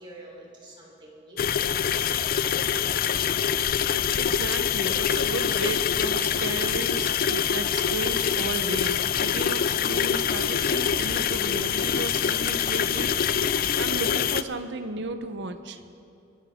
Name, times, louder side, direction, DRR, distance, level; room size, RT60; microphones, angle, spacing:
voice 1, 0.0-1.6 8.1-8.3, right 1 dB, 25° right, -3 dB, 3.7 m, -47 dB
sound 1, 1.4-14.4, left 8 dB, 50° left, 0.4 m, -25 dB
voice 2, 4.2-15.8, right 3 dB, 65° right, 9 dB, 0.8 m, -34 dB
25.0 x 12.0 x 3.6 m, 2.4 s
head